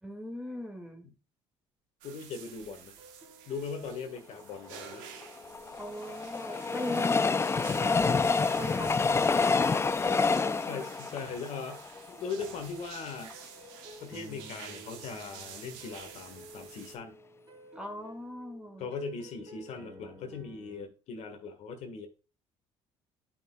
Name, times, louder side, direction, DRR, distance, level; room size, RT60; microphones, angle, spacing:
voice 1, 0.0-1.1 5.8-7.5 7.9-9.5 10.0-10.8 17.8-18.9, left 1 dB, 5° right, 2.0 m, -39 dB
voice 2, 2.0-2.9 3.5-5.0 10.6-13.3 14.0-17.2 18.8-22.1, left 5 dB, 65° left, 1.5 m, -40 dB
sound 1, 2.0-17.0, right 8 dB, 85° right, 1.3 m, -49 dB
sound 2, 3.0-20.9, right 1 dB, 35° right, 3.4 m, -53 dB
Train, 5.2-12.5 13.0-13.1 13.3-13.4, left 4 dB, 20° left, 0.4 m, -28 dB
11.0 x 5.9 x 2.3 m
supercardioid pair, 75°, 13 cm